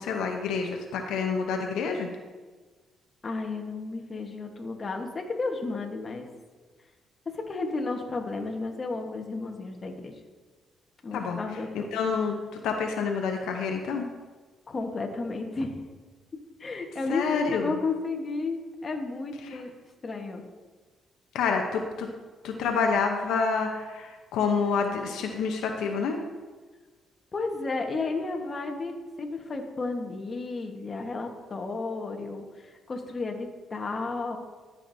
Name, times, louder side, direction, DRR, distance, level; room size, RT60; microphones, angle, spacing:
voice 1, 0.0-2.1 11.1-11.4 11.7-12.4 12.6-14.1 17.1-17.8 21.3-22.1 22.4-26.2, left 5 dB, 85° left, 3 dB, 0.8 m, -28 dB
voice 2, 3.2-6.3 7.3-10.1 11.0-11.9 14.7-15.7 16.6-19.7 20.0-20.4 27.3-34.4, left 3 dB, 35° left, 3 dB, 1.2 m, -33 dB
14.0 x 6.0 x 2.7 m, 1.3 s
cardioid pair, 90°, 0 cm